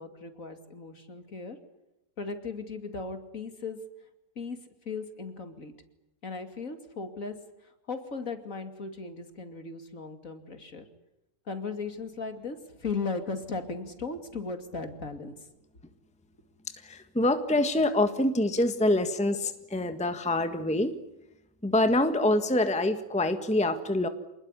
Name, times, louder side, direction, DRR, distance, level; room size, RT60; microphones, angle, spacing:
voice 1, 0.0-1.6 2.2-3.8 4.4-5.7 6.2-7.4 7.9-10.8 11.5-15.3, left 4 dB, 55° left, 7 dB, 3.0 m, -37 dB
voice 2, 16.8-21.0 21.6-24.1, left 1 dB, 5° left, 8 dB, 1.4 m, -25 dB
27.5 x 20.0 x 10.0 m, 0.90 s
omnidirectional pair, 1.8 m